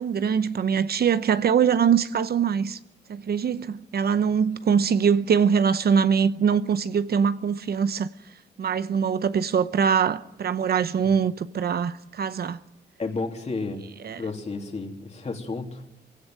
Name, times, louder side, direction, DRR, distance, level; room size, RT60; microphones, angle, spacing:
voice 1, 0.0-2.8 3.1-8.1 8.6-12.6 14.0-14.2, right 7 dB, 65° right, 0.8 m, -23 dB
voice 2, 13.0-13.8 14.2-15.9, left 3 dB, 40° left, 3.1 m, -32 dB
22.0 x 16.5 x 9.4 m
wide cardioid pair, 105°, 17 cm